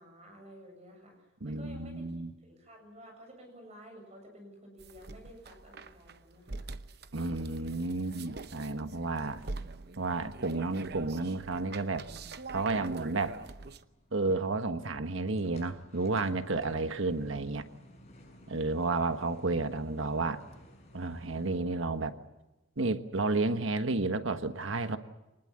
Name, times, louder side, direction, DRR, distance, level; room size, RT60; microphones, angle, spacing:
voice 1, 0.0-2.1 2.4-6.7 18.9-19.0, equal, 30° right, 3 dB, 7.8 m, -52 dB
voice 2, 1.4-2.3 7.1-9.4 10.0-12.0 12.5-13.4 14.1-17.6 18.5-20.4 20.9-22.1 22.8-25.0, right 3 dB, 75° right, 9 dB, 1.4 m, -31 dB
sound 1, 4.8-13.8, right 3 dB, 50° right, 0.9 m, -44 dB
sound 2, 13.5-21.6, equal, 35° left, 6.8 m, -57 dB
25.5 x 20.0 x 7.7 m, 1.0 s
head